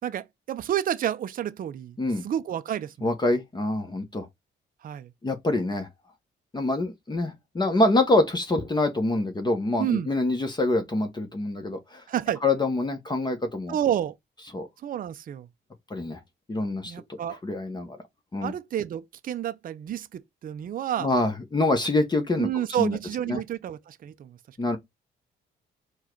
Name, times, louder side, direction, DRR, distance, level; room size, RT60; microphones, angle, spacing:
voice 1, 0.0-2.0 2.2-3.1 4.8-5.1 9.8-10.1 12.1-12.4 13.7-14.1 14.8-15.5 16.9-17.4 18.4-21.1 22.4-24.6, right 10 dB, 45° right, 0.5 m, -30 dB
voice 2, 3.0-4.3 5.2-5.9 6.5-12.0 12.4-13.8 14.5-14.7 15.9-16.2 16.5-16.9 17.4-18.0 18.3-18.5 21.0-22.5 22.8-23.0 23.3-23.4 24.6-24.8, left 2 dB, 20° left, 0.9 m, -25 dB
4.6 x 2.3 x 4.4 m
cardioid pair, 90°, 20 cm